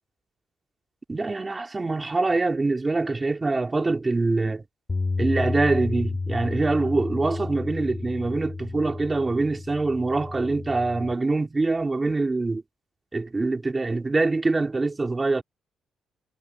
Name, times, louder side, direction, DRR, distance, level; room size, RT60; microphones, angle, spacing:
voice 1, 1.1-4.6 5.2-12.6 13.1-15.4, right 3 dB, 25° right, 3.0 m, -24 dB
Bass guitar, 4.9-11.1, left 3 dB, 25° left, 4.4 m, -31 dB
cardioid pair, 90°, 0 cm